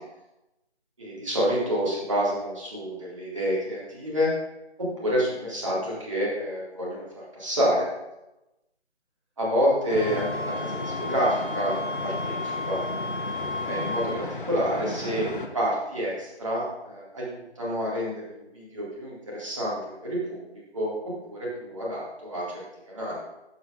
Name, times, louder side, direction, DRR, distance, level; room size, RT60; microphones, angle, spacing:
voice 1, 1.0-4.3 4.8-7.1 7.3-7.9 9.4-11.8 12.0-12.8 13.6-22.6 22.9-23.2, equal, 25° right, -6 dB, 2.1 m, -28 dB
sound 1, 9.9-15.5, left 2 dB, 50° left, 0.7 m, -34 dB
Wind instrument woodwind instrument, 9.9-14.2, left 2 dB, 75° right, 2.3 m, -34 dB
12.0 x 6.2 x 2.5 m, 0.96 s
figure-of-eight pair, 160°, 34 cm